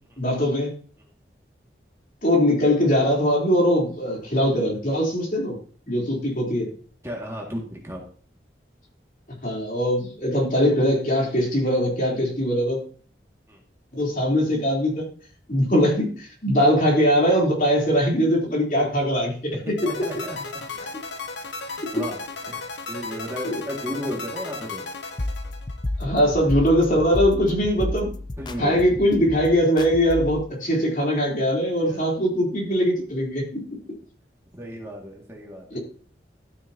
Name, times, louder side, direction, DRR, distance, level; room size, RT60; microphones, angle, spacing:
voice 1, 0.2-0.7 2.2-5.5 5.9-6.7 9.4-12.8 13.9-15.1 15.5-19.8 23.5-23.6 26.0-28.1 28.6-33.6 35.7-35.8, equal, 50° left, -2 dB, 3.6 m, -21 dB
voice 2, 7.0-8.0 13.5-13.6 19.5-20.6 21.6-24.9 28.4-29.0 29.8-30.1 31.8-32.3 34.5-35.8, equal, 15° right, -2 dB, 2.1 m, -35 dB
sound 1, 19.8-26.1, left 4 dB, 85° left, 1.1 m, -35 dB
sound 2, 25.2-30.4, left 1 dB, 25° left, 0.4 m, -31 dB
13.0 x 9.2 x 2.9 m, 0.43 s
head